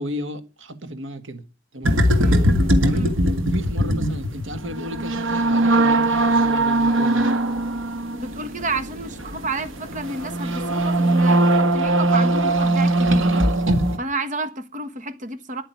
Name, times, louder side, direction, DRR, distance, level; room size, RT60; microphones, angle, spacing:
voice 1, 0.0-1.4 1.7-2.0 2.8-7.3, equal, 75° right, 1.9 m, -33 dB
sound 1, 1.8-14.0, right 1 dB, 90° right, 1.9 m, -20 dB
voice 2, 8.1-13.3 14.0-15.6, right 2 dB, 40° right, 1.5 m, -30 dB
10.0 x 9.0 x 9.2 m
head